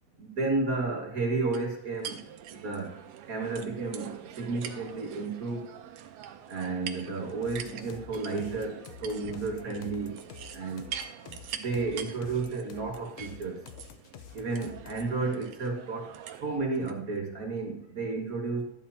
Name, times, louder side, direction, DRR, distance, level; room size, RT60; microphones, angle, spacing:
voice 1, 0.2-2.2 2.5-2.9 3.3-5.7 6.5-10.2 10.5-10.8 11.5-13.6 14.3-16.1 16.4-18.6, right 3 dB, 40° right, 0 dB, 1.4 m, -32 dB
sound 1, 1.5-17.0, right 9 dB, 75° right, 1.7 m, -44 dB
sound 2, 7.4-15.1, left 10 dB, 70° left, 1.6 m, -48 dB
12.5 x 10.5 x 2.8 m, 0.68 s
omnidirectional pair, 3.4 m